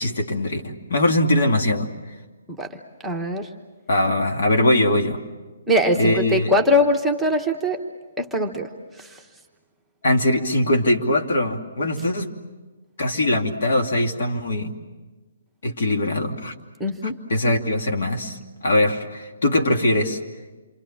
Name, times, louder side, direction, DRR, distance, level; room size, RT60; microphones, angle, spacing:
voice 1, 0.0-1.9 3.9-5.2 6.0-6.5 10.0-12.3 13.0-14.7 15.6-16.5 17.0-20.2, left 1 dB, 65° left, 3 dB, 2.6 m, -21 dB
voice 2, 3.0-3.5 5.7-7.8 8.2-8.7 9.0-9.2 16.8-17.1, left 1 dB, ahead, -1 dB, 1.1 m, -21 dB
28.0 x 24.0 x 7.4 m, 1.3 s
hypercardioid pair, 160°, 0 cm